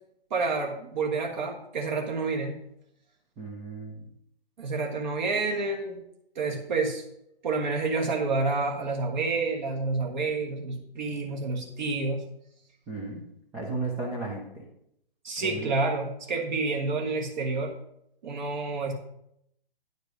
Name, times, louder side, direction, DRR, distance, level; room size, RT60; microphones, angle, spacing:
voice 1, 0.3-2.5 4.6-6.0 6.3-7.0 7.4-12.2 15.2-17.7 18.2-18.9, right 3 dB, 50° right, 2 dB, 1.5 m, -29 dB
voice 2, 3.4-4.1 12.9-13.2 13.5-14.7 15.4-15.7, right 3 dB, 5° right, -4 dB, 0.4 m, -34 dB
9.4 x 5.1 x 6.0 m, 0.77 s
figure-of-eight pair, 135°, 30 cm